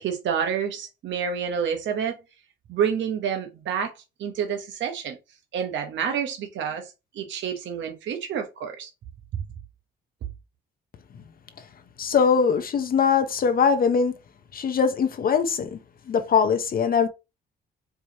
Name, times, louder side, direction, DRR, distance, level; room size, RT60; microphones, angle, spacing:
voice 1, 0.0-2.2 2.7-3.9 4.2-5.2 5.5-8.9, right 7 dB, 70° right, 0.8 m, -28 dB
voice 2, 12.0-14.1 14.5-15.8 16.1-17.1, left 6 dB, 45° left, 0.6 m, -21 dB
4.7 x 2.9 x 2.7 m
cardioid pair, 90°, 20 cm